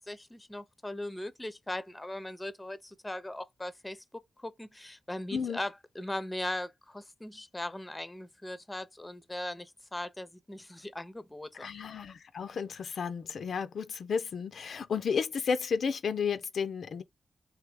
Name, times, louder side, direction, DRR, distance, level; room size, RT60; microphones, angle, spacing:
voice 1, 0.0-4.0 4.4-11.7, left 1 dB, 15° left, 0.5 m, -39 dB
voice 2, 11.6-17.0, left 6 dB, 80° left, 0.4 m, -32 dB
3.3 x 2.7 x 3.2 m
wide cardioid pair, 100°, 0 cm